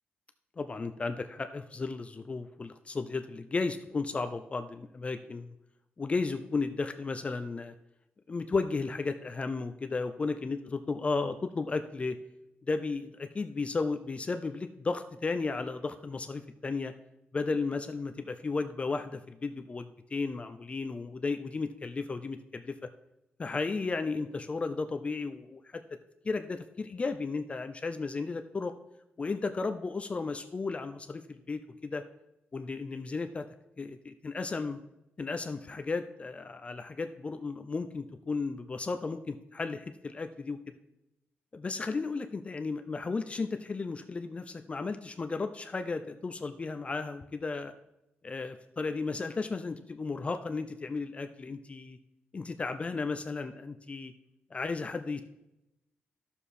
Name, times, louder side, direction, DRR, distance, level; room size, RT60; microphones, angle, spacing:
voice 1, 0.6-5.5 6.0-7.7 8.3-12.2 12.7-16.9 17.3-22.8 23.4-25.8 26.2-28.7 29.2-32.0 32.5-33.4 33.8-34.8 35.2-40.8 41.5-47.7 48.2-52.0 52.3-54.1 54.5-55.2, left 4 dB, 30° left, 7 dB, 0.5 m, -34 dB
11.0 x 7.1 x 4.3 m, 0.91 s
wide cardioid pair, 125°, 4 cm